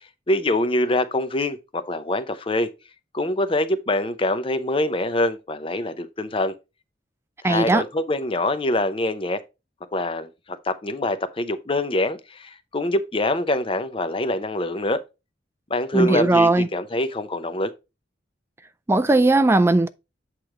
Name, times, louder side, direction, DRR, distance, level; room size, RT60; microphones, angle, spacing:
voice 1, 0.3-2.7 3.1-6.5 7.4-9.4 9.9-10.3 10.6-15.0 15.7-17.7, left 1 dB, 30° left, 0.7 m, -24 dB
voice 2, 7.4-7.8 15.9-16.7 18.9-19.9, right 2 dB, 15° right, 0.3 m, -18 dB
8.3 x 3.1 x 4.7 m
head